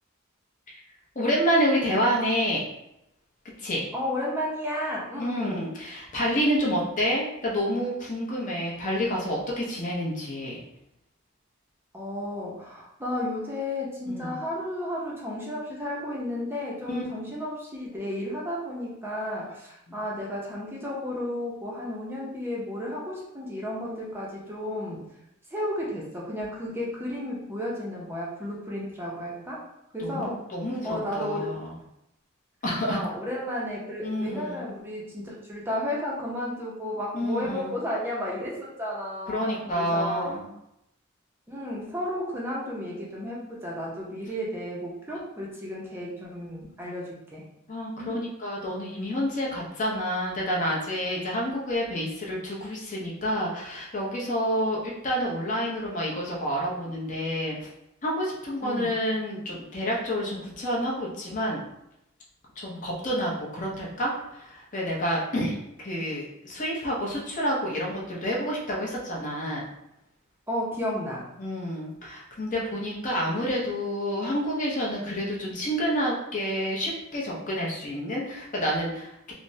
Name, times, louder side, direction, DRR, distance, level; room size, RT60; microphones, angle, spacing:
voice 1, 1.2-2.6 3.6-3.8 5.2-10.6 14.1-14.4 16.9-17.0 19.9-20.0 30.0-31.7 32.6-33.0 34.0-34.7 37.1-37.8 39.3-40.5 47.7-57.7 58.0-61.6 62.6-69.6 71.4-79.3, equal, 40° left, -3 dB, 0.6 m, -29 dB
voice 2, 3.9-5.7 11.9-25.0 25.5-29.6 29.9-30.4 30.8-31.5 32.9-40.3 41.5-47.4 48.0-48.2 58.6-58.9 70.5-71.3, left 1 dB, 10° right, -5 dB, 0.5 m, -33 dB
3.3 x 2.0 x 2.6 m, 0.82 s
head